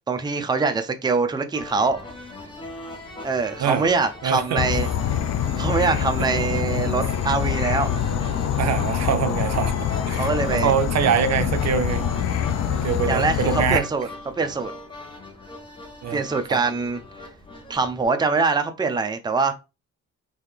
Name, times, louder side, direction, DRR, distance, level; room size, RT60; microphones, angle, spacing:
voice 1, 0.1-2.0 3.2-4.9 5.6-7.9 10.1-10.7 13.1-14.1 14.4-14.7 16.1-17.0 17.7-19.5, right 4 dB, 15° right, 0.6 m, -23 dB
sound 1, 1.5-18.0, left 2 dB, 15° left, 1.2 m, -39 dB
voice 2, 4.2-4.6 7.5-7.6 8.6-12.0 12.7-13.9 16.0-16.2 16.5-16.6, right 8 dB, 60° right, 0.6 m, -24 dB
Insect / Frog, 4.6-13.8, left 8 dB, 55° left, 0.6 m, -25 dB
3.9 x 2.8 x 3.3 m
cardioid pair, 90°, 30 cm